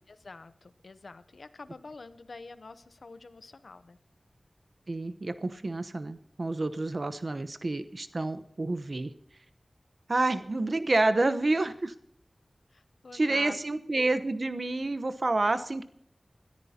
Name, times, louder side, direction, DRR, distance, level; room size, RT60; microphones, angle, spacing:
voice 1, 0.1-4.0 12.7-13.6, left 3 dB, 90° left, 12 dB, 0.8 m, -47 dB
voice 2, 4.9-9.1 10.1-11.9 13.1-15.8, right 2 dB, 60° right, 12 dB, 0.9 m, -29 dB
21.5 x 13.5 x 2.9 m, 0.70 s
wide cardioid pair, 50°, 0 cm